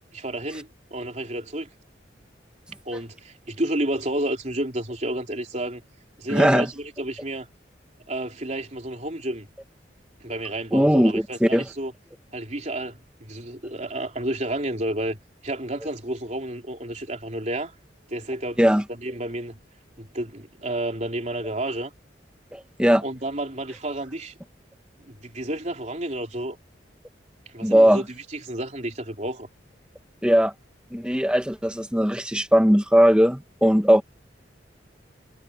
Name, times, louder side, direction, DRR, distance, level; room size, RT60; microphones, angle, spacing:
voice 1, 0.1-1.7 2.9-5.8 6.2-7.5 8.1-9.5 10.2-11.9 12.3-15.2 15.4-17.7 18.1-18.6 19.0-19.6 20.0-21.9 23.0-24.3 25.0-26.6 27.5-28.0 28.3-29.5, right 1 dB, 40° right, 3.7 m, -31 dB
voice 2, 6.3-6.7 10.7-11.6 18.6-18.8 22.5-23.0 27.6-28.0 30.2-30.5 30.9-34.0, equal, 5° right, 1.5 m, -19 dB
head